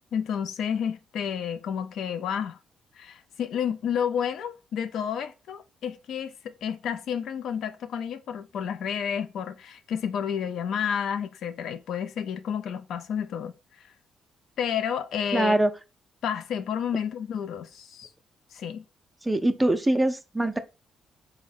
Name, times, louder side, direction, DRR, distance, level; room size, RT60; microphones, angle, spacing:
voice 1, 0.1-2.6 3.0-13.5 14.6-15.6 16.2-18.1 18.5-18.8, left 8 dB, 75° left, 0.4 m, -30 dB
voice 2, 15.3-15.7 19.3-20.6, right 1 dB, 10° right, 0.4 m, -23 dB
3.6 x 2.1 x 4.0 m
cardioid pair, 90°, 0 cm